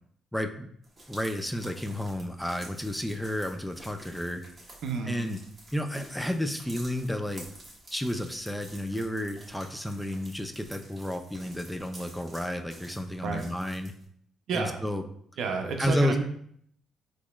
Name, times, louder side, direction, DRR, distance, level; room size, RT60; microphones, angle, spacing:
voice 1, 0.3-0.7 1.1-4.4 5.0-5.4 5.7-7.4 7.9-13.9 14.5-15.0 15.8-16.2, left 1 dB, 5° left, 6 dB, 0.3 m, -31 dB
sound 1, 0.8-14.0, right 1 dB, 25° right, 1.3 m, -50 dB
voice 2, 4.8-5.2 13.2-13.4 14.5-14.8 15.4-16.2, right 5 dB, 75° right, 4 dB, 0.5 m, -30 dB
4.0 x 3.0 x 2.3 m, 0.65 s
cardioid pair, 90°, 0 cm